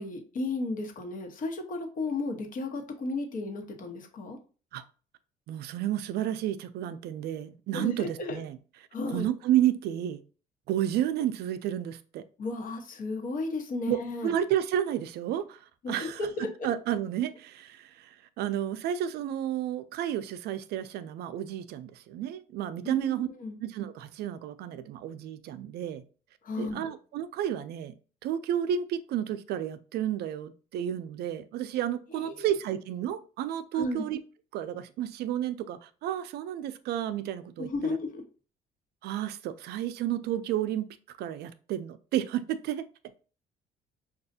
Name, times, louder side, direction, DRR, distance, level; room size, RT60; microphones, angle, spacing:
voice 1, 0.0-4.4 7.7-8.4 8.9-9.3 12.4-14.4 15.8-16.7 22.8-23.6 26.4-26.9 32.1-32.6 33.7-34.1 37.6-38.2, left 2 dB, 55° left, 1.1 m, -34 dB
voice 2, 5.5-8.6 9.1-10.2 10.7-12.2 13.9-16.2 16.6-23.3 23.6-26.0 26.6-27.9 28.2-34.2 34.5-38.0 39.0-40.9 41.2-42.9, right 11 dB, 70° right, 0.4 m, -31 dB
5.2 x 2.4 x 2.6 m
cardioid pair, 110°, 17 cm